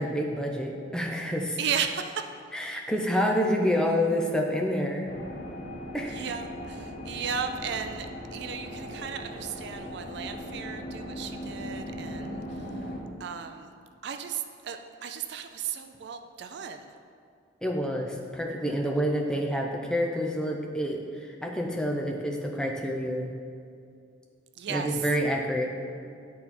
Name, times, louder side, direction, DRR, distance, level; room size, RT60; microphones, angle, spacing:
voice 1, 0.0-1.6 2.5-5.1 5.9-6.2 17.6-23.3 24.7-25.7, equal, 5° left, 0 dB, 0.6 m, -28 dB
voice 2, 1.6-2.3 6.0-12.7 13.2-13.7 14.0-16.9 24.6-25.0, right 7 dB, 60° right, 7 dB, 0.4 m, -35 dB
sound 1, 5.1-13.0, equal, 50° left, 0.9 m, -39 dB
9.9 x 4.1 x 4.2 m, 2.3 s
head